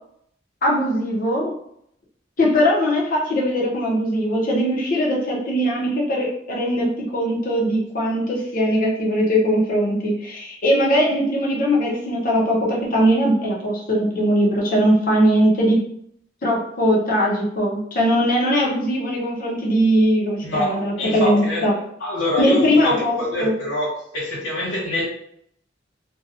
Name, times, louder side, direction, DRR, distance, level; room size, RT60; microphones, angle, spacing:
voice 1, 0.6-1.5 2.4-15.8 16.4-21.7 22.4-23.5, equal, 45° left, -3 dB, 0.7 m, -20 dB
voice 2, 20.4-21.7 22.0-23.0 23.3-25.0, left 1 dB, 75° left, -5 dB, 0.9 m, -25 dB
2.7 x 2.2 x 2.4 m, 0.71 s
head